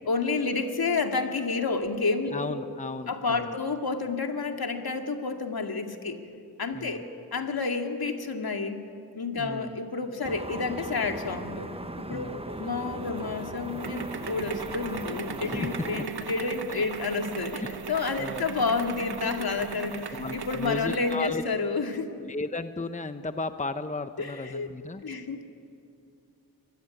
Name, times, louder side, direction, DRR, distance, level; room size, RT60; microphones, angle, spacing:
voice 1, 0.1-2.6 3.1-6.2 6.6-7.0 7.3-8.8 9.2-11.7 12.0-17.6 17.9-22.1 24.2-24.7 25.0-25.5, left 4 dB, 65° left, 4 dB, 2.4 m, -30 dB
voice 2, 2.3-3.5 6.7-7.0 9.4-9.8 12.1-12.4 15.4-15.9 16.7-16.8 17.6-17.7 18.2-18.5 20.1-21.4 22.2-25.0, left 3 dB, 20° left, 9 dB, 1.0 m, -35 dB
sound 1, 10.2-16.1, right 2 dB, 15° right, 1.1 m, -38 dB
sound 2, 12.5-21.3, right 6 dB, 70° right, 1.4 m, -38 dB
24.5 x 19.0 x 9.7 m, 2.5 s
cardioid pair, 55°, 40 cm